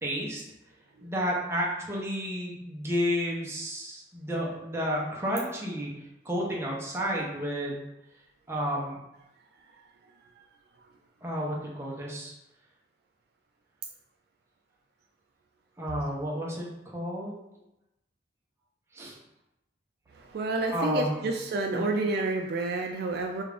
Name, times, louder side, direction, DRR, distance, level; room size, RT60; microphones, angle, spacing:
voice 1, 0.0-0.4 1.0-5.9 6.2-7.8 8.5-9.0 11.2-12.3 15.8-17.4 18.9-19.2 20.7-21.3 21.7-21.9, equal, 15° right, -4 dB, 0.7 m, -31 dB
voice 2, 20.1-23.4, right 3 dB, 55° right, 2 dB, 0.3 m, -29 dB
3.5 x 2.5 x 3.4 m, 0.90 s
head